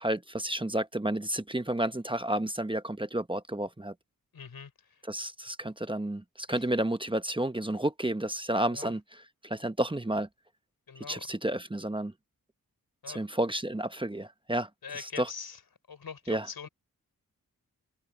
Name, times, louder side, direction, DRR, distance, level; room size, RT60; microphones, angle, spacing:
voice 1, 0.0-3.9 5.1-9.0 9.4-10.3 11.1-12.1 13.1-14.7 15.0-15.3 16.3-16.5, right 1 dB, 15° right, 1.0 m, -31 dB
voice 2, 4.3-5.0 6.5-6.6 8.7-8.9 10.9-11.3 13.0-13.2 14.8-15.6 15.9-16.7, left 6 dB, 90° left, 5.0 m, -43 dB
wide cardioid pair, 65°, 36 cm